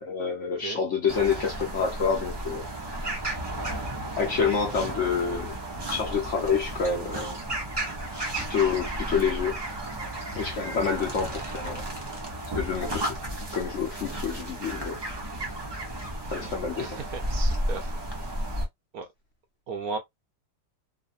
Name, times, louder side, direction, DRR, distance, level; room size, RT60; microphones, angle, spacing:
voice 1, 0.0-2.7 4.2-5.5 5.9-7.4 8.5-9.6 10.3-11.8 12.5-13.1 13.5-15.0 16.3-17.0, left 6 dB, 60° left, 0.9 m, -27 dB
sound 1, 1.1-18.7, right 1 dB, 35° right, 0.4 m, -33 dB
voice 2, 16.8-17.9 18.2-18.4 18.9-19.1 19.7-20.0, right 4 dB, 70° right, 0.9 m, -35 dB
3.2 x 2.1 x 2.4 m
omnidirectional pair, 1.8 m